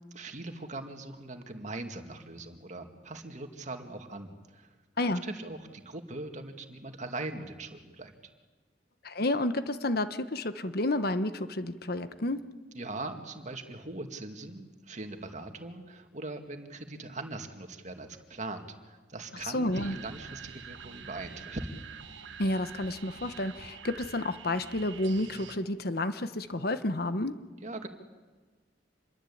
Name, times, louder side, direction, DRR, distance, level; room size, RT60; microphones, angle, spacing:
voice 1, 0.1-4.7 5.2-8.3 12.7-21.7 27.6-27.9, right 2 dB, 40° right, 5 dB, 2.3 m, -41 dB
voice 2, 9.0-12.4 19.5-20.0 22.4-27.3, left 1 dB, 55° left, 11 dB, 1.2 m, -30 dB
sound 1, 19.7-25.6, right 6 dB, 90° right, 1.5 m, -46 dB
27.5 x 22.0 x 8.7 m, 1.3 s
head